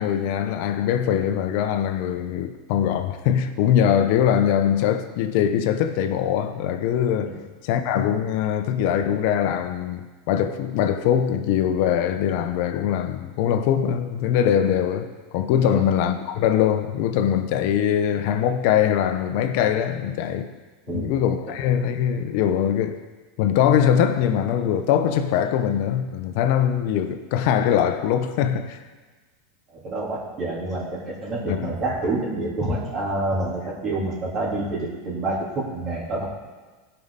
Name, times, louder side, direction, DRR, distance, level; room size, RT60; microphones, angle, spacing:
voice 1, 0.0-7.4 7.6-20.5 20.9-23.0 23.4-28.8 31.5-31.7, left 9 dB, 65° left, 0.9 m, -22 dB
voice 2, 29.7-36.3, right 2 dB, 35° right, 3.5 m, -28 dB
16.0 x 5.7 x 4.1 m
supercardioid pair, 115°, 0 cm